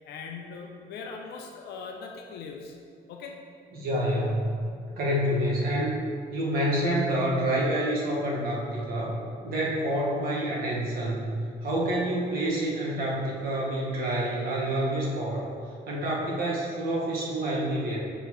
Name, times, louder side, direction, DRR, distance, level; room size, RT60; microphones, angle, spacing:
voice 1, 0.0-2.7 3.1-3.4, left 5 dB, 75° left, 1 dB, 0.6 m, -40 dB
voice 2, 3.7-6.0 6.3-9.2 9.4-11.3 11.6-15.5 15.9-18.0, right 1 dB, 65° right, -4 dB, 1.5 m, -28 dB
7.0 x 5.6 x 3.0 m, 2.3 s
cardioid pair, 150°, 17 cm